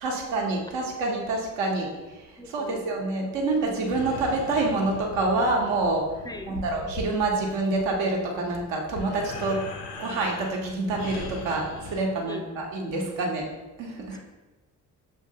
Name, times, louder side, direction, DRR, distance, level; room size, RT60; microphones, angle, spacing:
voice 1, 0.0-6.1 6.5-9.6 10.0-13.5 13.8-14.2, right 2 dB, 70° right, 0 dB, 1.2 m, -27 dB
voice 2, 2.4-2.9 6.2-6.6 10.0-10.2 12.2-12.4 14.1-14.2, left 2 dB, 10° left, 5 dB, 0.3 m, -40 dB
sound 1, 3.5-12.0, left 2 dB, 85° left, 0.7 m, -40 dB
6.4 x 2.8 x 2.8 m, 1.1 s
hypercardioid pair, 50°, 47 cm